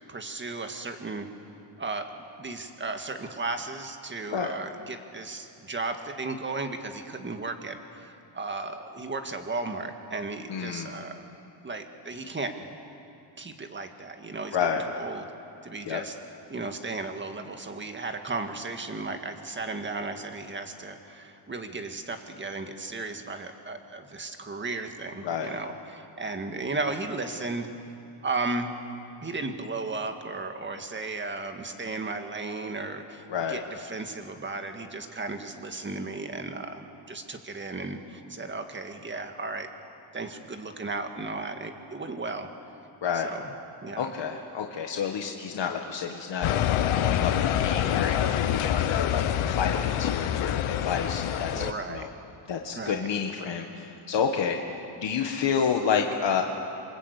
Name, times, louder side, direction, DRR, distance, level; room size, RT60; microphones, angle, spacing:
voice 1, 0.1-1.3 1.8-2.1 2.4-11.2 11.6-12.8 13.4-14.6 14.9-15.3 15.6-16.1 16.5-27.7 28.2-28.7 29.2-39.7 40.1-42.5 43.1-43.5 43.8-44.1 51.5-52.1 52.8-53.1, right 3 dB, 25° right, 6 dB, 1.9 m, -35 dB
voice 2, 10.5-11.0 14.5-14.9 15.9-16.0 25.2-25.5 33.3-33.6 43.0-43.3 44.0-46.5 46.9-52.1 52.5-54.6 55.0-56.4, left 7 dB, 60° left, 2 dB, 1.7 m, -29 dB
sound 1, 46.4-51.7, left 10 dB, 90° left, 1.2 m, -26 dB
28.0 x 24.0 x 8.3 m, 2.8 s
wide cardioid pair, 145°, 49 cm